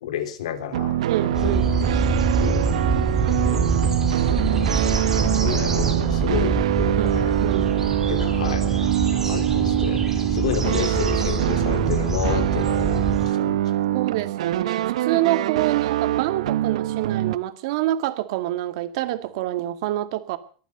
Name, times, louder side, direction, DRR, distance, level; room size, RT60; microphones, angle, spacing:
voice 1, 0.0-1.5 2.4-2.7 3.2-3.7 4.3-5.0 5.3-7.4 8.1-8.8 9.1-13.6, left 10 dB, 90° left, 10 dB, 3.0 m, -31 dB
sound 1, 0.7-17.4, right 13 dB, 90° right, 0.9 m, -24 dB
voice 2, 1.1-1.7 7.0-7.7 13.9-20.4, right 15 dB, 60° right, 10 dB, 2.0 m, -26 dB
sound 2, 1.3-13.3, right 3 dB, 10° right, 3.6 m, -25 dB
23.0 x 9.1 x 6.7 m, 0.42 s
supercardioid pair, 160°, 3 cm